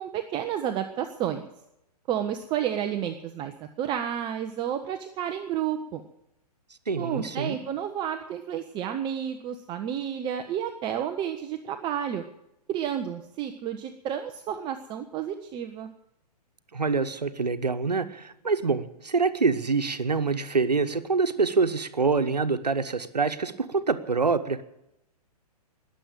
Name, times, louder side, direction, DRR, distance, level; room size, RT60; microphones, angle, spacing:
voice 1, 0.0-1.5 2.1-3.5 3.8-6.0 7.0-12.3 12.7-15.9, right 9 dB, 25° right, 6 dB, 0.9 m, -31 dB
voice 2, 6.9-7.6 16.7-24.6, right 4 dB, 80° right, 10 dB, 1.2 m, -26 dB
20.0 x 7.6 x 9.0 m, 0.83 s
figure-of-eight pair, 115°, 21 cm